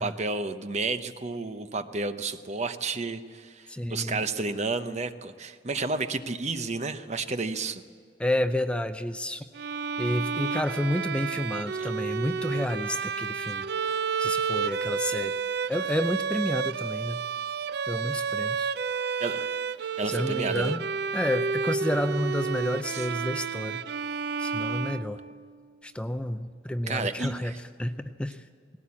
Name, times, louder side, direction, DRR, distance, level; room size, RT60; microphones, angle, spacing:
voice 1, 0.0-7.8 19.2-19.6 20.0-20.7 22.9-23.1 26.9-27.6, right 3 dB, 40° right, 10 dB, 0.9 m, -31 dB
voice 2, 3.7-4.2 8.2-9.4 10.0-13.6 14.2-15.4 15.7-17.2 17.9-18.7 20.1-20.8 21.1-23.8 24.4-25.2 25.8-28.5, left 1 dB, 5° left, 9 dB, 0.5 m, -30 dB
Bowed string instrument, 9.5-25.5, right 6 dB, 60° right, 0.5 m, -31 dB
19.0 x 17.0 x 8.6 m, 2.1 s
head